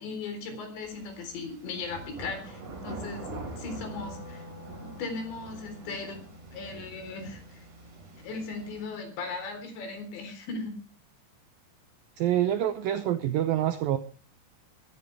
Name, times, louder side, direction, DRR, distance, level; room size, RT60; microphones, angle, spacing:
voice 1, 0.0-3.3 3.6-4.4 4.8-7.6 8.2-10.8, left 4 dB, 80° left, 6 dB, 6.1 m, -38 dB
sound 1, 0.8-8.8, right 2 dB, 45° right, 5.7 m, -44 dB
Wind instrument woodwind instrument, 3.5-9.7, left 1 dB, 35° left, 1.4 m, -50 dB
voice 2, 12.2-14.0, right 11 dB, 75° right, 10 dB, 2.2 m, -26 dB
21.5 x 14.0 x 3.4 m, 0.33 s
omnidirectional pair, 5.0 m